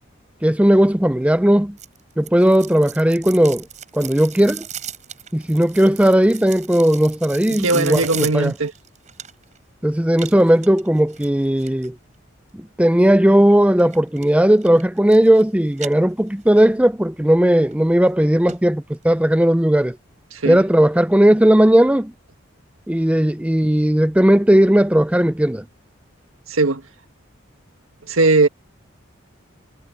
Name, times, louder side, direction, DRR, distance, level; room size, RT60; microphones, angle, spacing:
voice 1, 0.4-1.8 2.2-3.7 3.9-4.6 5.3-8.5 9.8-12.0 12.5-20.0 20.5-22.1 22.9-25.6, right 1 dB, 5° right, 0.5 m, -16 dB
sound 1, 1.8-9.6 10.1-11.9 13.8-14.3 14.6-15.4 15.7-16.6 17.0-17.1 17.7-17.8 18.1-18.2 18.5-18.6 18.9-19.0, right 9 dB, 35° right, 6.7 m, -36 dB
voice 2, 7.5-8.7 20.3-20.6 26.5-26.8 28.1-28.5, right 3 dB, 90° right, 1.7 m, -18 dB
head